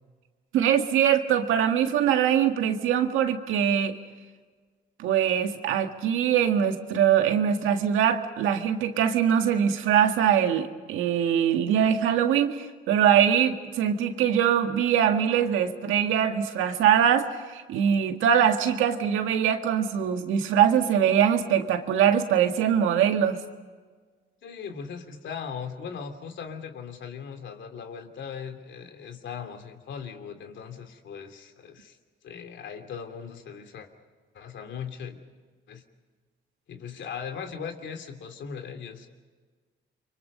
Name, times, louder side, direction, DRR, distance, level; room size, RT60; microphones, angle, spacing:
voice 1, 0.5-4.0 5.0-23.4, right 9 dB, 90° right, 6 dB, 1.8 m, -23 dB
voice 2, 24.4-32.0 32.2-33.9 34.3-35.2 35.7-35.8 36.7-39.1, left 6 dB, 70° left, 6 dB, 2.8 m, -39 dB
29.5 x 24.0 x 5.4 m, 1.5 s
cardioid pair, 90°, 20 cm